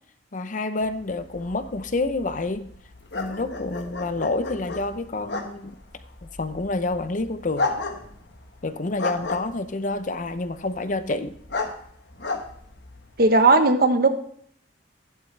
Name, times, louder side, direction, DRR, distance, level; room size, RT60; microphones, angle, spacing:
voice 1, 0.3-2.7 3.1-5.7 6.2-7.7 8.6-11.3, left 2 dB, 45° left, 11 dB, 0.6 m, -28 dB
sound 1, 0.8-13.3, left 3 dB, 65° left, 1.2 m, -34 dB
voice 2, 13.2-14.1, right 3 dB, 55° right, 8 dB, 1.0 m, -17 dB
11.5 x 11.0 x 3.2 m, 0.64 s
head